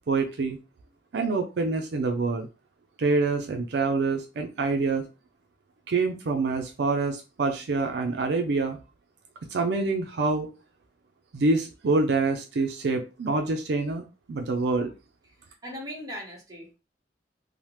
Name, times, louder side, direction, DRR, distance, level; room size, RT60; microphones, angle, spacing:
voice 1, 0.1-0.6 1.1-2.5 3.0-5.1 5.9-8.8 9.5-10.5 11.3-14.9, right 3 dB, 70° right, 4 dB, 0.4 m, -26 dB
voice 2, 15.6-16.8, equal, 20° right, -2 dB, 1.0 m, -38 dB
3.2 x 2.0 x 2.9 m, 0.30 s
head